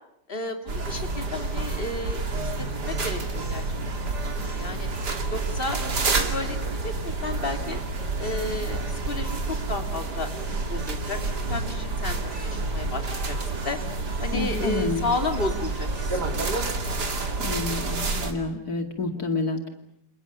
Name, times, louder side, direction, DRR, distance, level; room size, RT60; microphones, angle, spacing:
voice 1, 0.3-4.9 5.3-5.8 6.2-7.8 8.2-8.8 9.1-10.3 10.7-11.2 11.5-13.8 14.2-16.5, left 2 dB, 35° left, 5 dB, 3.3 m, -33 dB
sound 1, 0.7-18.3, right 3 dB, 75° right, 3.2 m, -29 dB
voice 2, 14.3-15.1 17.4-19.7, left 3 dB, 65° left, 5 dB, 2.9 m, -29 dB
29.5 x 28.5 x 7.0 m, 0.74 s
omnidirectional pair, 1.8 m